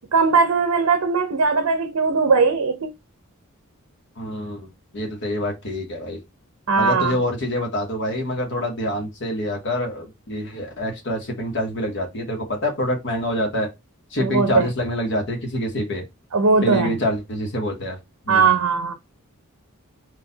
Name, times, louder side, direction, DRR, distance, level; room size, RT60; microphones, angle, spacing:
voice 1, 0.1-2.9 6.7-7.2 14.2-14.7 16.3-16.9 18.3-18.9, right 4 dB, 70° right, 0.7 m, -19 dB
voice 2, 4.2-4.7 4.9-6.2 6.8-13.7 14.1-16.0 16.6-18.0 18.2-18.5, left 1 dB, 55° left, 1.0 m, -26 dB
4.2 x 2.4 x 3.8 m
head